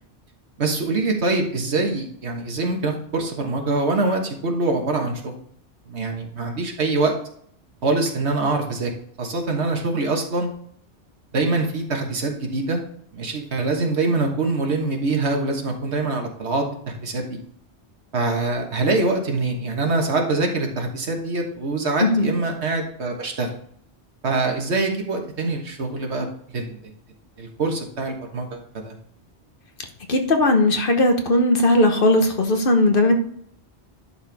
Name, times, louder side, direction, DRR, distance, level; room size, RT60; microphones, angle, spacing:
voice 1, 0.6-5.3 5.9-7.1 7.8-8.9 9.2-10.5 11.3-12.8 13.1-17.4 18.1-23.5 24.2-26.9 27.4-29.0, right 3 dB, 70° right, 2 dB, 1.6 m, -24 dB
voice 2, 22.0-22.3 30.1-33.1, left 1 dB, 55° left, 5 dB, 1.2 m, -18 dB
11.0 x 4.4 x 3.4 m, 0.63 s
omnidirectional pair, 1.2 m